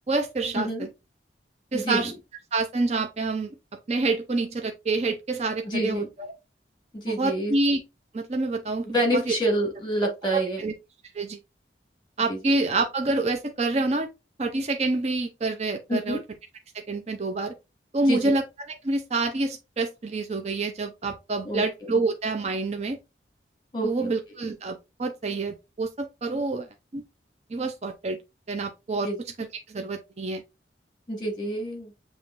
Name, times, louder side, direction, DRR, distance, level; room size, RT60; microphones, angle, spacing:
voice 1, 0.1-0.9 1.7-2.1 2.5-3.5 3.9-6.3 7.1-7.8 8.1-8.9 9.1-9.3 10.3-10.7 11.1-11.4 12.2-14.1 14.4-16.2 16.7-17.5 17.9-23.0 23.8-26.7 26.9-27.0 27.5-28.2 28.5-29.1 29.4-30.4, right 3 dB, 35° right, 0.5 m, -27 dB
voice 2, 5.6-6.1 6.9-7.5 8.8-10.6 12.3-12.4 15.9-16.2 18.1-18.3 21.4-21.9 23.7-24.1 29.0-29.2 31.1-31.9, right 1 dB, 25° left, 1.9 m, -27 dB
6.9 x 3.0 x 2.5 m
head